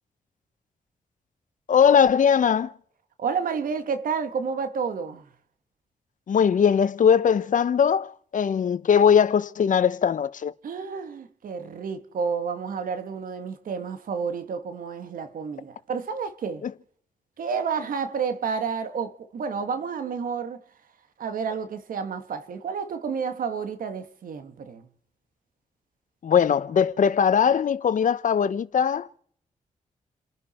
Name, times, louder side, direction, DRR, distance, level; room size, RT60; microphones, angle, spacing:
voice 1, 1.7-2.7 6.3-10.5 16.6-16.7 26.2-29.2, left 7 dB, 65° left, 1.0 m, -20 dB
voice 2, 3.2-5.3 10.6-16.7 17.4-20.6 21.2-24.9, right 6 dB, 80° right, 1.8 m, -30 dB
30.0 x 11.0 x 4.4 m
cardioid pair, 65°, 14 cm